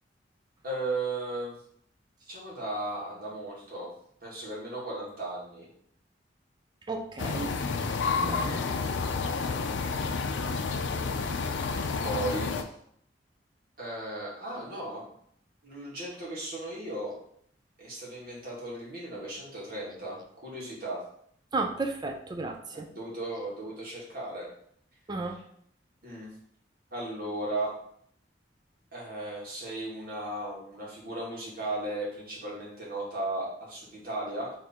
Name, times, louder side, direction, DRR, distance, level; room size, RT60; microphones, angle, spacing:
voice 1, 0.6-1.6 2.3-3.9 4.2-5.7 10.9-11.1 12.0-12.7 13.8-15.1 15.6-17.2 17.8-21.0 22.9-24.5 26.0-26.3 26.9-27.7 28.9-34.5, right 2 dB, 55° right, -5 dB, 1.8 m, -36 dB
voice 2, 6.9-7.5 8.2-8.7 21.5-22.9 25.1-25.4, right 3 dB, 25° right, 4 dB, 0.4 m, -33 dB
sound 1, 7.2-12.6, left 4 dB, 85° left, 0.5 m, -30 dB
3.7 x 3.3 x 4.4 m, 0.66 s
head